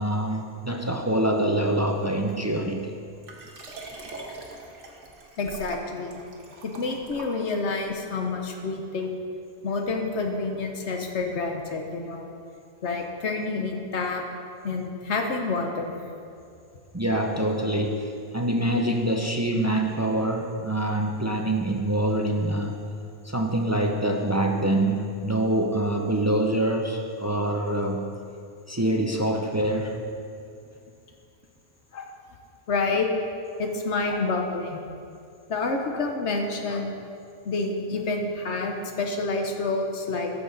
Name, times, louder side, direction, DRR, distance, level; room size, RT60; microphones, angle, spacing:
voice 1, 0.0-2.9 16.9-22.8 23.2-28.0 28.7-30.0, right 1 dB, 20° right, 2 dB, 0.4 m, -25 dB
Liquid, 3.2-7.8 8.5-8.6, right 2 dB, 85° right, 1.5 m, -43 dB
voice 2, 5.4-6.2 6.6-9.1 9.6-12.3 12.8-14.2 14.6-16.0 31.9-32.1 32.7-33.1 33.6-34.8 35.5-36.9 37.4-40.3, left 3 dB, 75° left, 3 dB, 1.2 m, -28 dB
13.5 x 6.7 x 4.0 m, 2.4 s
omnidirectional pair, 1.2 m